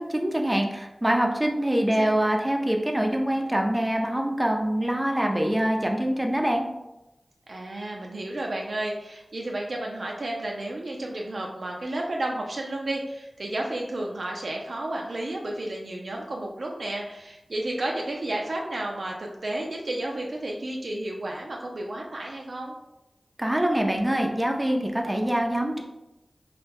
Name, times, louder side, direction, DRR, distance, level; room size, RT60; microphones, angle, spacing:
voice 1, 0.0-6.7 23.4-25.8, right 1 dB, 15° right, 2 dB, 0.5 m, -24 dB
voice 2, 1.7-2.1 7.5-22.7, right 1 dB, 75° right, -1 dB, 0.4 m, -32 dB
3.1 x 2.2 x 3.3 m, 0.94 s
cardioid pair, 45°, 0 cm